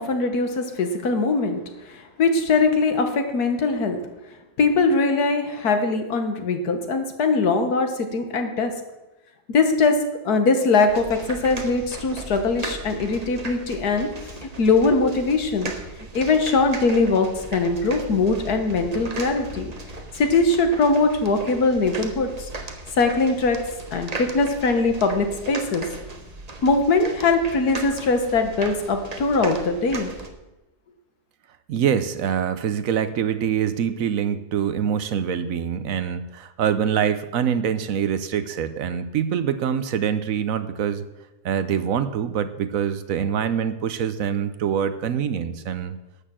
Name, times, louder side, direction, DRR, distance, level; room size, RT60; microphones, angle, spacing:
voice 1, 0.0-1.6 1.9-4.0 4.6-8.7 9.5-10.0 10.2-14.1 14.4-15.7 16.1-19.7 20.2-22.5 23.0-23.6 23.9-25.9 26.6-30.1, left 3 dB, 85° left, 6 dB, 1.8 m, -21 dB
sound 1, 10.9-30.3, right 2 dB, 30° right, 1.1 m, -37 dB
voice 2, 31.7-41.0 41.4-46.0, right 8 dB, 65° right, 12 dB, 1.1 m, -24 dB
12.0 x 6.6 x 7.5 m, 1.0 s
omnidirectional pair, 1.6 m